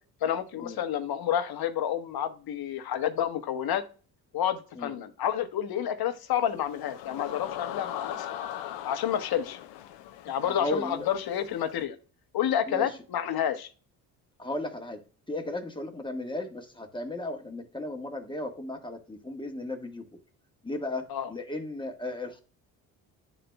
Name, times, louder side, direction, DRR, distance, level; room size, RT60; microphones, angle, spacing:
voice 1, 0.2-3.8 4.3-8.3 8.8-9.6 10.2-12.0 12.3-13.7 21.1-21.3, left 10 dB, 60° left, 9 dB, 1.1 m, -29 dB
sound 1, 6.3-11.8, left 11 dB, 85° left, 0.6 m, -40 dB
voice 2, 10.4-11.1 12.7-13.0 14.4-15.0 15.3-20.2 20.6-22.4, left 2 dB, 10° left, 4 dB, 1.3 m, -35 dB
11.0 x 4.0 x 2.2 m, 0.37 s
supercardioid pair, 65°, 41 cm